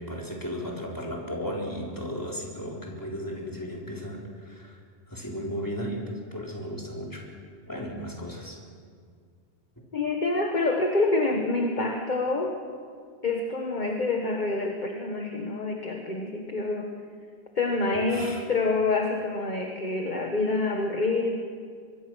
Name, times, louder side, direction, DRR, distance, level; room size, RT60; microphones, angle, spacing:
voice 1, 0.0-4.8 5.1-6.0 6.3-7.2 7.7-8.6 17.9-18.4, equal, 15° left, -2 dB, 4.1 m, -35 dB
voice 2, 9.9-12.6 13.2-17.0 17.6-21.4, left 3 dB, 40° left, 2 dB, 1.6 m, -27 dB
24.0 x 23.0 x 6.3 m, 2.1 s
omnidirectional pair, 1.2 m